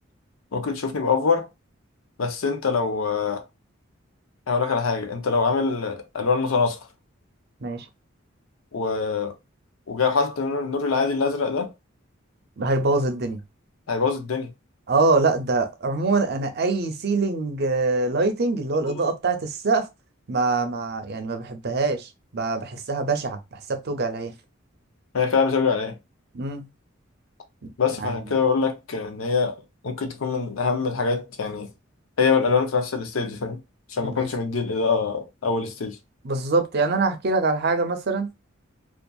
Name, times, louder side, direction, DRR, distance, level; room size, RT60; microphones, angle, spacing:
voice 1, 0.5-1.5 2.2-3.4 4.5-6.8 8.7-9.3 9.9-11.7 13.9-14.5 18.9-19.0 25.1-26.0 27.8-29.5 29.8-31.7 32.2-33.6 33.9-36.0, left 5 dB, 85° left, 0.6 m, -24 dB
voice 2, 12.6-13.4 14.9-19.9 20.3-24.3 26.3-26.7 27.6-27.7 28.0-28.2 34.0-34.3 36.2-38.3, right 3 dB, 55° right, 0.5 m, -24 dB
2.6 x 2.4 x 2.3 m
head